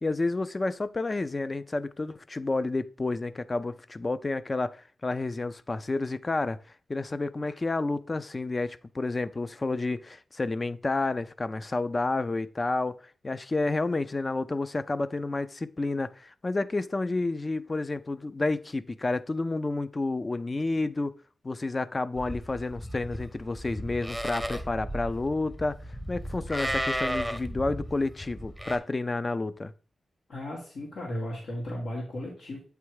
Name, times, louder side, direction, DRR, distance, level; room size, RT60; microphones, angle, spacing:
voice 1, 0.0-6.6 6.9-21.1 21.4-25.8 26.1-29.7, left 2 dB, 30° left, 0.5 m, -30 dB
Livestock farm animals working animals, 22.2-28.8, equal, 5° left, 0.8 m, -35 dB
voice 2, 30.3-32.6, left 1 dB, 80° left, 2.2 m, -35 dB
8.5 x 3.3 x 4.7 m
wide cardioid pair, 95°, 0 cm